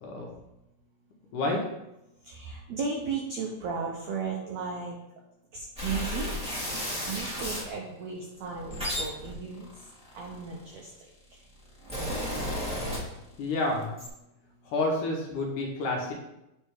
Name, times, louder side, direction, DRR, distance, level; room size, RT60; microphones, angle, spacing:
voice 1, 0.0-0.3 1.3-1.6 13.4-14.0 14.6-16.1, left 2 dB, 70° left, -1 dB, 2.2 m, -29 dB
voice 2, 2.2-4.9 5.5-6.3 7.1-9.7 10.2-10.9, right 5 dB, 80° right, -1 dB, 1.6 m, -35 dB
sound 1, 5.8-7.7 8.4-10.8 11.5-13.5 13.8-14.1, equal, 5° right, 1.2 m, -33 dB
9.5 x 3.3 x 4.7 m, 0.89 s
omnidirectional pair, 4.3 m